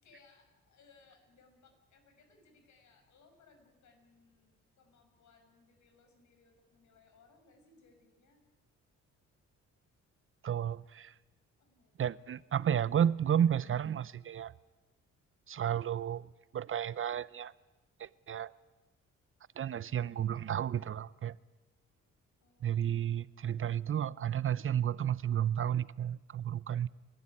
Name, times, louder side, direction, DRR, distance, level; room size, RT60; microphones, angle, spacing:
voice 1, 0.0-8.4 11.6-12.5 22.4-23.4, left 4 dB, 70° left, 6.5 m, -65 dB
voice 2, 10.4-11.1 12.0-14.5 15.5-17.5 18.0-18.5 19.6-21.4 22.6-26.9, right 9 dB, 45° right, 0.6 m, -32 dB
30.0 x 12.0 x 9.9 m
cardioid pair, 90°, 30 cm